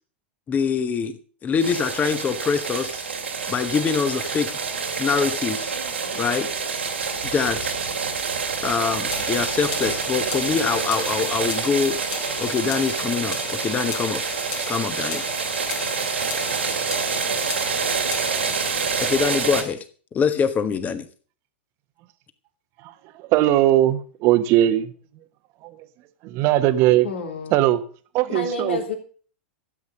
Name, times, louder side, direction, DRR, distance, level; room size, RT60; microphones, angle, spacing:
voice 1, 0.5-3.0 3.5-4.6 5.0-5.7 6.1-6.5 7.2-7.7 8.6-12.0 12.4-14.2 14.7-15.2 19.0-19.8 20.1-21.1, left 6 dB, 25° left, 11 dB, 1.6 m, -24 dB
sound 1, 1.6-19.6, right 5 dB, 85° right, 2.4 m, -27 dB
sound 2, 9.1-18.7, left 7 dB, 45° left, 3.2 m, -36 dB
voice 2, 22.8-24.9 25.6-25.9 26.2-27.1 27.5-27.8 28.1-28.8, right 13 dB, 45° right, 11 dB, 1.3 m, -20 dB
voice 3, 27.0-27.5 28.3-28.9, left 2 dB, 80° left, 3 dB, 3.4 m, -29 dB
12.5 x 8.4 x 6.5 m, 0.42 s
hypercardioid pair, 100°, 6 cm